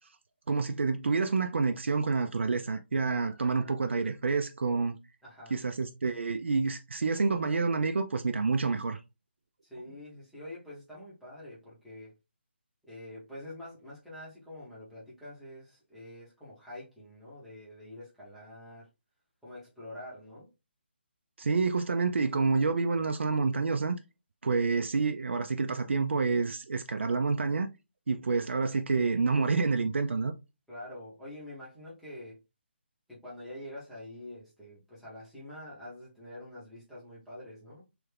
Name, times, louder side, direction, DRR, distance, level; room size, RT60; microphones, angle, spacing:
voice 1, 0.5-5.0 5.5-9.0 21.4-24.0 24.4-27.7 28.1-30.3, right 4 dB, 90° right, 0.4 m, -28 dB
voice 2, 5.2-5.6 9.6-12.1 12.8-18.9 19.4-20.5 30.7-32.4 33.1-37.8, left 1 dB, ahead, 0.7 m, -46 dB
3.3 x 2.4 x 3.2 m
hypercardioid pair, 180°, 6 cm